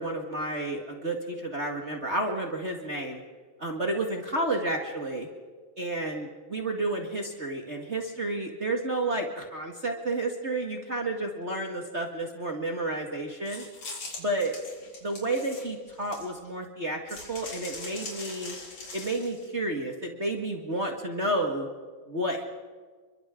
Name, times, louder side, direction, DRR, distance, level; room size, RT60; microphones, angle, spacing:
voice 1, 0.0-3.2 3.6-5.3 5.8-13.6 14.2-14.6 15.0-18.5 18.9-21.7 22.1-22.4, right 2 dB, 25° right, 1 dB, 1.7 m, -31 dB
sound 1, 13.4-16.5 17.1-19.4, left 3 dB, 50° left, 4.9 m, -41 dB
29.5 x 24.0 x 3.8 m, 1.5 s
omnidirectional pair, 3.6 m